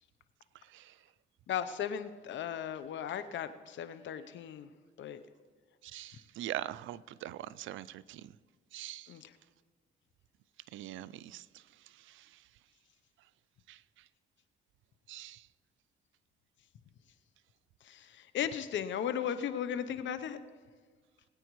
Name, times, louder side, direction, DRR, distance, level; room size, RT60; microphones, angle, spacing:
voice 1, 1.5-4.7 5.0-5.2 9.1-9.3 17.8-20.4, left 9 dB, 70° left, 12 dB, 0.8 m, -36 dB
voice 2, 5.8-8.3 8.7-9.1 10.7-11.4 12.1-12.2 13.7-13.8 15.1-15.4, right 13 dB, 75° right, 19 dB, 0.4 m, -42 dB
21.0 x 9.2 x 3.1 m, 1.5 s
cardioid pair, 90°, 20 cm